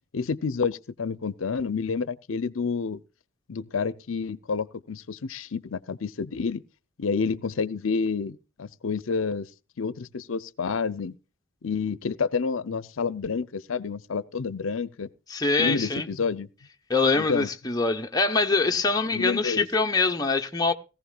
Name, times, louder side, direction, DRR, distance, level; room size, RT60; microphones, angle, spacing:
voice 1, 0.1-3.0 3.5-6.6 7.0-9.5 9.8-11.2 11.6-15.1 15.6-16.5 17.1-17.5 19.1-19.7, left 5 dB, 80° left, 0.6 m, -29 dB
voice 2, 15.3-16.1 16.9-20.7, left 3 dB, 20° left, 0.9 m, -24 dB
18.0 x 15.0 x 2.4 m
head